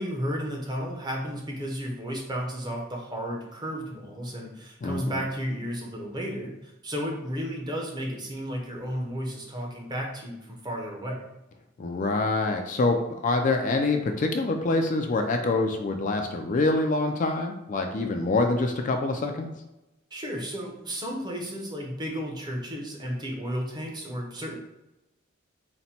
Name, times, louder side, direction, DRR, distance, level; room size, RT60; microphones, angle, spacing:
voice 1, 0.0-11.3 20.1-24.6, equal, 20° right, -1 dB, 0.7 m, -33 dB
voice 2, 4.8-5.2 11.8-13.0 13.2-19.5, left 3 dB, 40° left, 4 dB, 0.3 m, -25 dB
4.0 x 2.1 x 4.2 m, 0.94 s
head